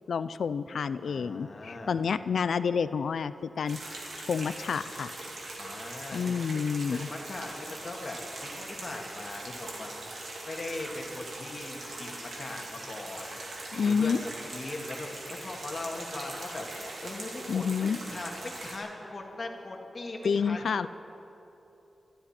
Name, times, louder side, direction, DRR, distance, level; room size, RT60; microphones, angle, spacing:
voice 1, 0.1-3.8 4.3-5.1 6.1-7.1 13.7-14.2 17.5-18.0 20.2-20.9, left 6 dB, 80° left, 14 dB, 0.5 m, -29 dB
voice 2, 1.0-2.0 5.6-6.5 6.9-9.9 10.4-20.9, left 2 dB, 40° left, 0 dB, 1.9 m, -40 dB
sound 1, 3.7-18.8, right 2 dB, 70° right, 3.0 m, -41 dB
24.0 x 12.5 x 4.4 m, 3.0 s
wide cardioid pair, 145°, 0 cm